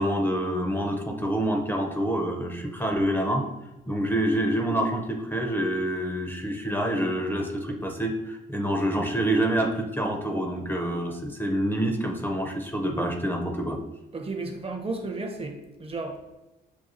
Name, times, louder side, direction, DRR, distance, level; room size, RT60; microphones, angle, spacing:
voice 1, 0.0-3.4 3.9-13.8, right 1 dB, 10° left, 2 dB, 0.5 m, -27 dB
voice 2, 14.1-16.3, right 3 dB, 30° right, 4 dB, 0.7 m, -33 dB
6.2 x 2.3 x 2.6 m, 1.0 s
cardioid pair, 90°, 20 cm